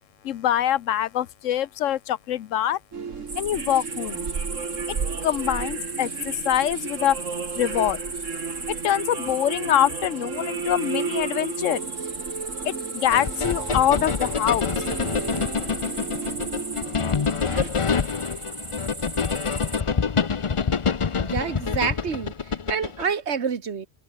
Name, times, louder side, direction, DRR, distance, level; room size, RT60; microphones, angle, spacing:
voice 1, 0.2-2.8 3.4-4.3 5.2-7.2 7.6-8.0 8.7-11.9 12.6-14.7, left 11 dB, 85° left, 1.1 m, -24 dB
sound 1, 2.9-17.7, right 6 dB, 85° right, 2.0 m, -33 dB
sound 2, 3.3-19.8, right 3 dB, 45° right, 3.2 m, -36 dB
sound 3, 13.1-23.1, left 6 dB, 35° left, 0.5 m, -26 dB
voice 2, 21.2-23.9, right 6 dB, 65° right, 1.6 m, -28 dB
omnidirectional pair, 1.3 m